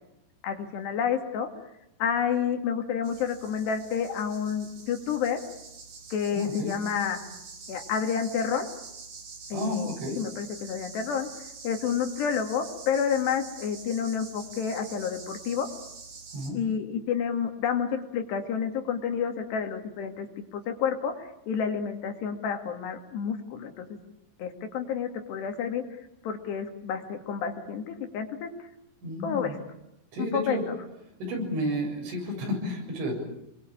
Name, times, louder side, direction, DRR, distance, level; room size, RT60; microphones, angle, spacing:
voice 1, 0.4-1.5 2.0-5.4 6.1-7.2 7.7-8.7 9.5-11.3 11.6-15.7 16.5-20.3 20.5-23.9 24.4-25.8 26.2-28.5 29.2-29.6 30.2-30.6, left 7 dB, 65° left, 5 dB, 4.3 m, -29 dB
sound 1, 3.0-16.5, right 4 dB, 50° right, 5.8 m, -45 dB
voice 2, 6.3-6.7 9.5-10.2 16.3-16.6 29.0-29.6 30.1-30.7 31.2-33.2, left 1 dB, 90° right, 2 dB, 9.7 m, -31 dB
28.5 x 22.5 x 8.7 m, 0.84 s
omnidirectional pair, 5.3 m